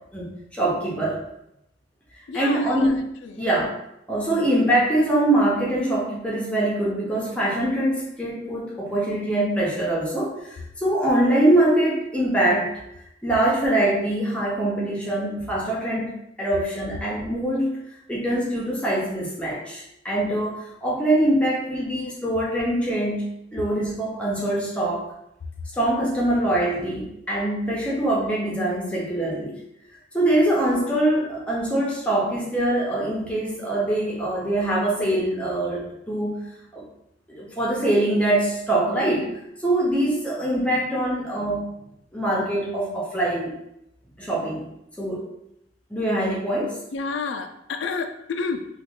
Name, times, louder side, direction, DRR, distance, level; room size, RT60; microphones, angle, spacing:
voice 1, 0.1-1.2 2.3-3.1 3.4-3.8 4.1-12.7 13.2-25.1 25.7-29.5 30.1-36.5 36.7-36.8 37.3-39.3 39.6-41.7 42.1-43.5 44.2-44.7 45.0-45.2 45.9-46.8, right 1 dB, 5° left, -5 dB, 0.6 m, -23 dB
voice 2, 2.3-3.0 3.2-3.4 46.9-48.7, left 4 dB, 75° left, 6 dB, 0.3 m, -30 dB
2.9 x 2.3 x 3.5 m, 0.82 s
head